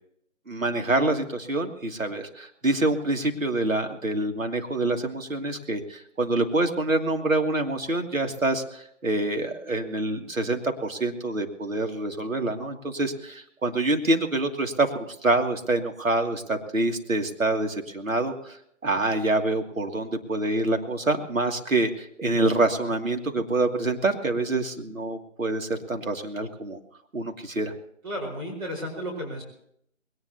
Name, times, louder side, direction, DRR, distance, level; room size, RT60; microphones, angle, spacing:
voice 1, 0.5-18.6 18.8-26.8 27.1-27.7, right 2 dB, 85° right, 4 dB, 2.8 m, -26 dB
voice 2, 28.0-29.4, equal, 25° right, -2 dB, 4.7 m, -33 dB
21.0 x 19.0 x 2.9 m, 0.70 s
figure-of-eight pair, 160°, 39 cm